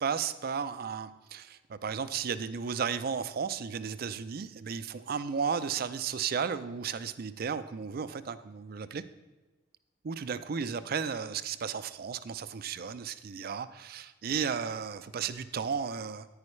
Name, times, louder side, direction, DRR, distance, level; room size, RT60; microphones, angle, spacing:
voice 1, 0.0-9.0 10.0-16.3, right 6 dB, 50° right, 13 dB, 0.4 m, -34 dB
9.6 x 9.4 x 3.2 m, 1.2 s
head